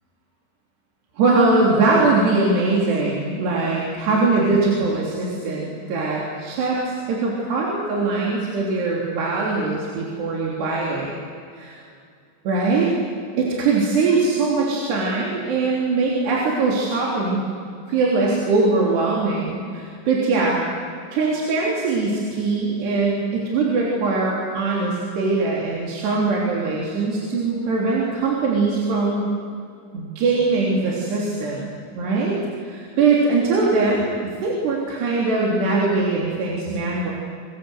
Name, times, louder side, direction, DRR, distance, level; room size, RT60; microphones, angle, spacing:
voice 1, 1.2-11.1 11.5-11.8 12.5-12.9 13.4-17.4 17.9-20.6 21.1-29.3 29.9-31.7 32.0-37.1, right 3 dB, 65° right, -3 dB, 5.4 m, -21 dB
27.5 x 24.0 x 8.2 m, 2.4 s
omnidirectional pair, 5.4 m